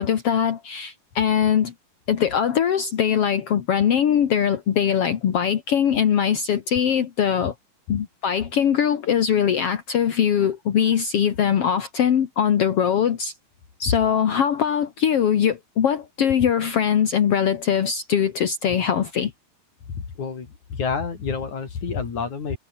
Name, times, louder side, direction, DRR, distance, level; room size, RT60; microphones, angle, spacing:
voice 1, 0.0-1.7 2.1-7.5 7.9-13.3 13.8-19.3, left 8 dB, 60° left, 1.5 m, -21 dB
voice 2, 19.9-22.6, left 5 dB, 45° left, 4.8 m, -28 dB
omnidirectional pair, 5.0 m